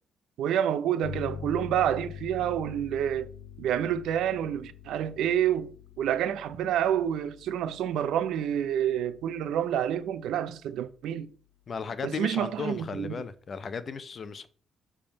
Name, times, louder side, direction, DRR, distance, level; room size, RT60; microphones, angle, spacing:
voice 1, 0.4-3.3 3.6-5.7 6.0-11.3 12.0-13.1, right 10 dB, 80° right, 0.6 m, -28 dB
sound 1, 1.0-10.3, left 7 dB, 90° left, 0.8 m, -45 dB
voice 2, 11.7-14.5, left 5 dB, 45° left, 0.7 m, -35 dB
6.8 x 3.6 x 5.2 m
cardioid pair, 90°, 0 cm